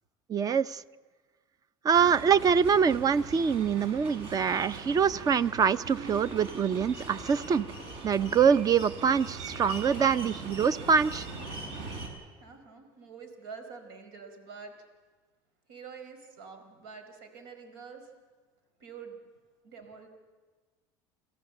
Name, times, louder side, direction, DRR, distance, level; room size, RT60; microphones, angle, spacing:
voice 1, 0.3-0.8 1.8-7.7 8.0-11.3, right 6 dB, 35° right, 17 dB, 0.7 m, -25 dB
sound 1, 1.9-12.1, right 3 dB, 60° right, 5.4 m, -41 dB
voice 2, 12.4-14.7 15.7-18.1 18.8-19.2 19.6-20.1, right 5 dB, 90° right, 6 dB, 4.7 m, -46 dB
28.5 x 14.5 x 8.0 m, 1.4 s
supercardioid pair, 110°, 11 cm